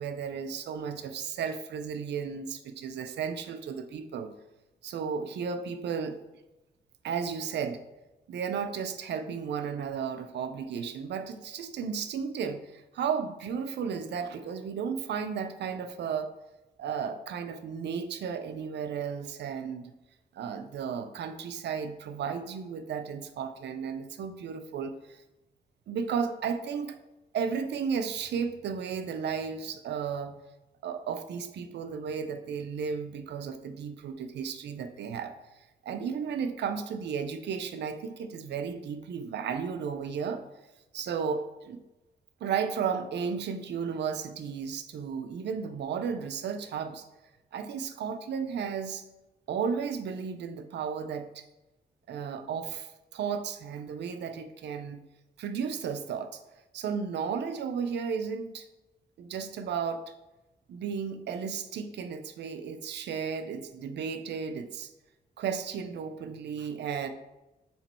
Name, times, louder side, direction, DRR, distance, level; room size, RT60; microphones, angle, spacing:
voice 1, 0.0-4.3 4.8-6.2 7.0-7.8 8.3-16.4 16.8-19.8 20.3-25.2 25.9-26.9 27.3-30.4 30.8-35.3 35.8-40.4 40.9-41.8 42.4-47.0 47.5-49.0 49.5-51.5 52.1-55.0 55.4-56.4 56.7-58.7 59.2-60.0 60.7-64.9 65.4-67.1, right 6 dB, 85° right, 9 dB, 0.6 m, -34 dB
7.1 x 3.0 x 4.4 m, 0.99 s
cardioid pair, 75°, 18 cm